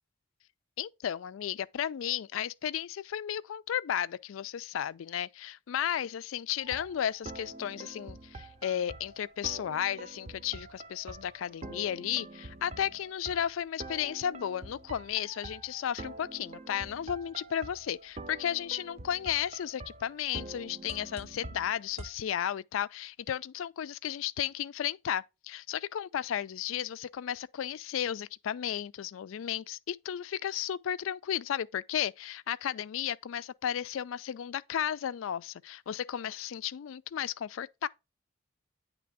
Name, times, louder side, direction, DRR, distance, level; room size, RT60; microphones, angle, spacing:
voice 1, 0.8-37.9, left 10 dB, 80° left, 0.3 m, -34 dB
sound 1, 6.6-22.1, right 2 dB, 35° right, 0.5 m, -46 dB
9.4 x 3.3 x 3.5 m
head